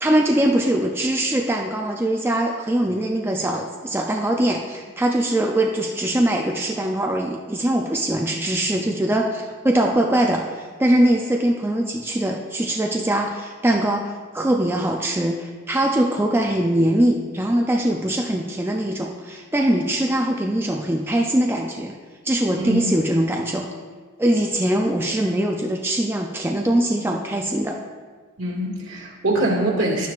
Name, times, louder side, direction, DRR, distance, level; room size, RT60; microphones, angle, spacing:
voice 1, 0.0-21.9 22.2-23.7 24.2-27.8, right 1 dB, 10° right, 1 dB, 0.4 m, -22 dB
voice 2, 22.6-22.9 28.4-30.1, right 1 dB, 65° right, -3 dB, 2.0 m, -23 dB
12.0 x 9.3 x 2.4 m, 1.5 s
head